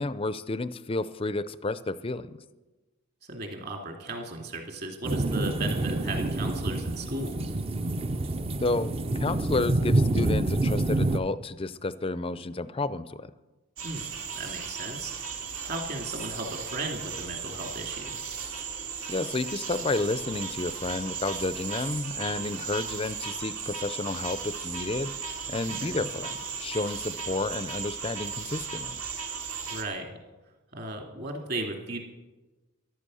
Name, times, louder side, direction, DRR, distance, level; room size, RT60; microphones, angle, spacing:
voice 1, 0.0-2.4 8.6-13.3 19.1-29.0, left 3 dB, 25° left, 15 dB, 0.4 m, -31 dB
voice 2, 3.3-7.5 13.8-15.1 15.6-18.2 22.3-22.6 25.8-26.1 29.7-30.1 30.7-32.0, right 2 dB, 45° right, 2 dB, 2.6 m, -36 dB
sound 1, 5.0-11.2, right 2 dB, 25° right, 0.5 m, -27 dB
sound 2, 13.8-29.8, right 6 dB, 70° right, 2.1 m, -36 dB
14.0 x 11.5 x 6.3 m, 1.2 s
head